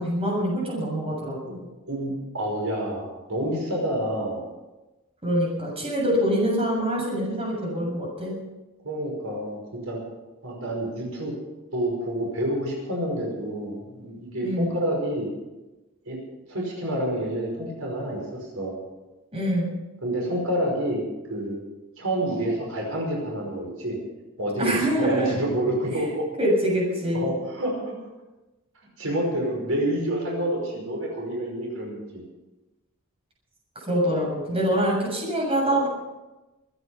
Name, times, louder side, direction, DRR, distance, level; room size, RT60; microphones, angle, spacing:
voice 1, 0.0-1.7 5.2-8.3 14.4-14.8 19.3-19.7 24.6-25.3 26.4-27.3 33.9-35.9, equal, 30° right, -3 dB, 7.2 m, -25 dB
voice 2, 1.9-4.4 8.8-10.0 10.4-11.3 11.7-15.3 16.1-16.2 16.5-18.8 20.0-21.0 21.3-21.6 22.0-24.0 24.4-26.3 27.1-28.0 29.0-32.2, right 1 dB, 85° right, -1 dB, 5.4 m, -28 dB
23.5 x 10.0 x 5.8 m, 1.1 s
head